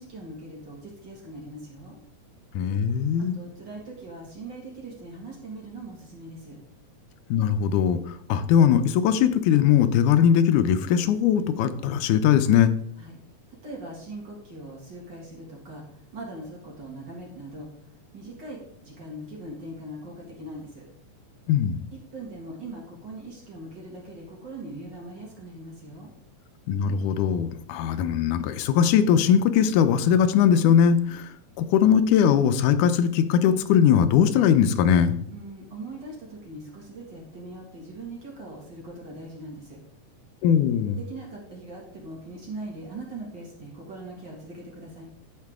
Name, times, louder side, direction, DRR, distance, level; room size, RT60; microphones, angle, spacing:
voice 1, 0.0-2.0 3.3-6.6 13.0-13.2 13.5-17.7 18.1-20.8 21.9-26.1 35.3-39.8 40.9-45.0, right 2 dB, 40° right, -2 dB, 2.2 m, -41 dB
voice 2, 2.6-3.4 7.3-8.0 8.3-12.7 21.5-21.8 26.7-31.3 31.6-35.2 40.4-41.0, left 8 dB, 85° left, 10 dB, 2.2 m, -20 dB
14.0 x 4.8 x 3.6 m, 0.67 s
omnidirectional pair, 3.5 m